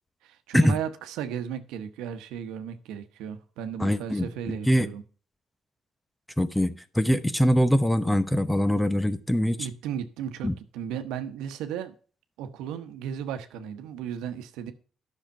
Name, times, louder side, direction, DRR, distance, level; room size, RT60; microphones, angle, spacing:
voice 1, 0.2-5.0 9.6-11.9 12.4-14.7, right 8 dB, 90° right, 1.0 m, -35 dB
voice 2, 3.8-4.3 4.7-4.9 6.4-9.7 10.4-10.5, equal, 10° left, 0.9 m, -23 dB
10.5 x 6.5 x 5.5 m
cardioid pair, 75°, 0 cm